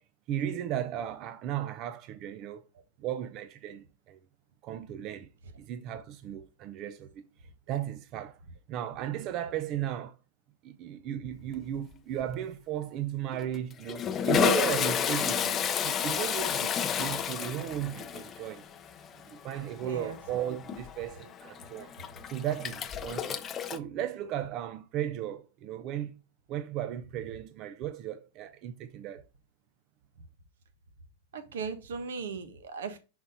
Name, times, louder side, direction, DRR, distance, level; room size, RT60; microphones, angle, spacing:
voice 1, 0.3-2.6 3.0-4.2 4.6-5.3 5.6-7.2 7.7-8.4 8.7-10.2 10.6-18.6 19.3-21.9 22.3-23.4 23.7-26.2 26.5-29.2, right 11 dB, 40° right, 0.5 m, -35 dB
Toilet flush, 11.5-11.9 12.2-12.4 13.3-23.8, left 8 dB, 25° left, 0.6 m, -31 dB
voice 2, 19.8-20.2 31.3-33.0, right 5 dB, 80° right, 1.3 m, -37 dB
6.1 x 4.1 x 3.9 m
supercardioid pair, 140°, 0 cm